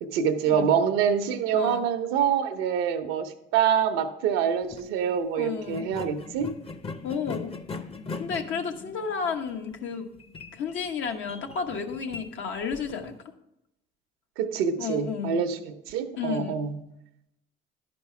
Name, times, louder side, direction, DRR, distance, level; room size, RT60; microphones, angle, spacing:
voice 1, 0.0-6.5 14.4-16.8, right 7 dB, 90° right, 9 dB, 0.8 m, -26 dB
sound 1, 4.6-4.9 5.7-13.2, left 4 dB, 30° left, 0.7 m, -41 dB
voice 2, 5.4-5.9 7.0-7.5 8.2-10.1 10.5-13.1 14.8-15.4 16.2-16.6, left 6 dB, 70° left, 4 dB, 1.2 m, -32 dB
11.5 x 5.2 x 5.8 m, 0.86 s
supercardioid pair, 85°, 20 cm